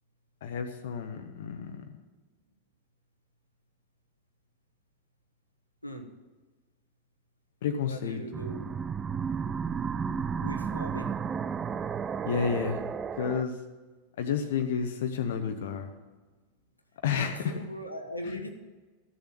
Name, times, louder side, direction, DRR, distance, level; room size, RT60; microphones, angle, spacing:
voice 1, 0.4-1.8 7.6-8.2 12.3-12.8 13.2-13.6 14.2-15.9 17.0-17.5 18.2-18.4, left 7 dB, 55° left, 6 dB, 1.0 m, -30 dB
voice 2, 7.8-8.7 10.4-11.1 17.1-18.5, equal, 85° left, 5 dB, 1.2 m, -39 dB
sound 1, 8.3-13.4, right 6 dB, 20° right, 0.5 m, -33 dB
14.0 x 6.9 x 8.3 m, 1.3 s
figure-of-eight pair, 90°, 0 cm